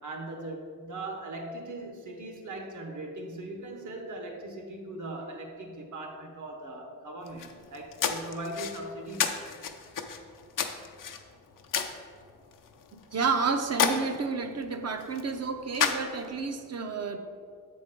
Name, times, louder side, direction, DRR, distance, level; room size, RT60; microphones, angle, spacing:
voice 1, 0.0-9.4, right 2 dB, 70° right, 3 dB, 1.1 m, -39 dB
sound 1, 7.2-16.5, left 7 dB, 90° left, 0.6 m, -34 dB
voice 2, 13.1-17.2, right 5 dB, 55° right, 6 dB, 0.6 m, -30 dB
7.5 x 3.9 x 5.2 m, 2.1 s
wide cardioid pair, 125°, 31 cm